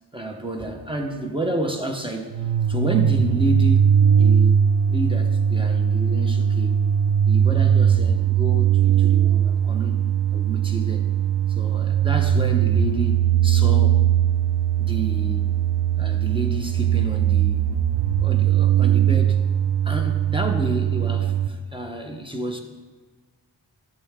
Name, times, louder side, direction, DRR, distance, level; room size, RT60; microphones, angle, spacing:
voice 1, 0.1-6.8 7.3-10.0 10.3-11.1 11.5-14.0 14.8-15.5 16.0-17.7 18.2-19.4 19.8-22.6, right 1 dB, 10° right, 3 dB, 1.0 m, -30 dB
sound 1, 2.3-21.5, right 9 dB, 65° right, 0.6 m, -20 dB
11.5 x 6.7 x 3.7 m, 1.3 s
wide cardioid pair, 60°, 45 cm